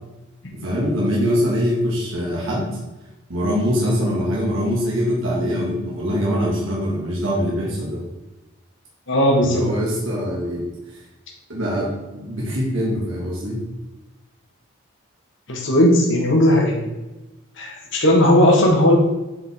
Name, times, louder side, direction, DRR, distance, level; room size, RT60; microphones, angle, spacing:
voice 1, 0.5-2.8 3.3-8.0 9.4-10.6 10.9-11.0 11.5-13.6, equal, 70° right, -5 dB, 1.8 m, -23 dB
voice 2, 9.1-9.6 15.5-16.9 17.6-19.0, left 1 dB, 60° left, -1 dB, 1.6 m, -16 dB
8.6 x 4.7 x 3.7 m, 1.0 s
head